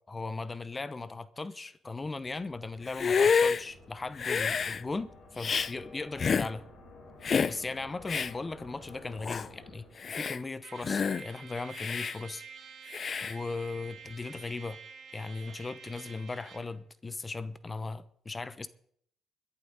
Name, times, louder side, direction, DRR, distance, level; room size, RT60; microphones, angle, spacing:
voice 1, 0.1-6.6 7.5-12.4 13.2-14.8 15.1-18.7, left 3 dB, 25° left, 0.8 m, -38 dB
sound 1, 1.9-10.5, left 2 dB, 80° left, 7.5 m, -52 dB
Hiss, 2.9-3.6 4.2-4.8 5.4-5.7 6.2-6.5 7.2-7.6 8.1-8.3 8.9-9.0 9.2-9.5 10.0-10.4 10.8-11.2 11.7-12.2 12.9-13.3, left 6 dB, 45° left, 0.4 m, -28 dB
Trumpet, 10.6-16.7, right 6 dB, 65° right, 3.8 m, -49 dB
21.5 x 11.0 x 4.0 m
cardioid pair, 90°, 0 cm